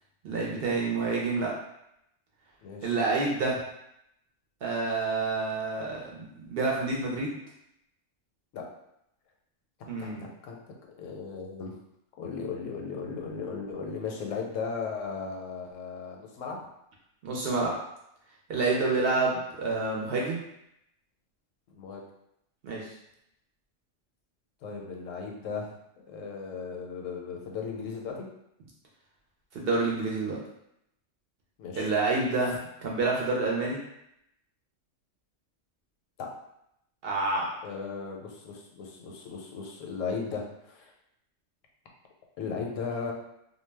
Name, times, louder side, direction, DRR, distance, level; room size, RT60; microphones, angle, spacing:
voice 1, 0.2-1.5 2.8-3.6 4.6-7.3 9.9-10.2 17.2-17.7 18.5-20.4 22.6-22.8 29.5-30.4 31.8-33.8 37.0-37.5, right 3 dB, 60° right, -3 dB, 0.6 m, -28 dB
voice 2, 2.6-2.9 8.5-8.6 10.0-10.1 10.4-11.8 12.2-16.6 18.8-19.0 21.7-22.0 24.6-25.7 26.1-28.3 31.6-31.9 36.2-36.3 37.6-40.9 42.4-43.1, left 5 dB, 90° left, 1 dB, 0.9 m, -36 dB
2.2 x 2.1 x 3.2 m, 0.79 s
omnidirectional pair, 1.3 m